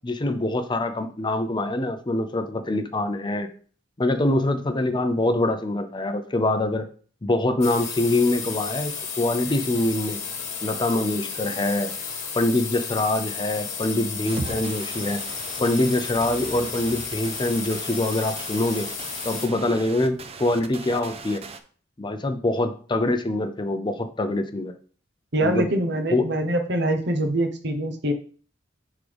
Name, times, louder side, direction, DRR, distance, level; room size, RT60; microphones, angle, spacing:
voice 1, 0.0-3.5 4.0-6.9 7.2-10.2 10.6-11.9 12.3-15.2 15.6-18.9 19.2-21.4 22.0-24.7 25.4-25.7 26.1-26.3, left 2 dB, 25° left, 9 dB, 0.6 m, -24 dB
sound 1, 7.6-19.5, left 6 dB, 40° left, 1.3 m, -33 dB
sound 2, 14.2-21.6, right 3 dB, 35° right, 0.6 m, -38 dB
voice 2, 25.3-28.1, right 1 dB, 65° right, 6 dB, 1.0 m, -24 dB
9.7 x 3.7 x 3.4 m, 0.43 s
head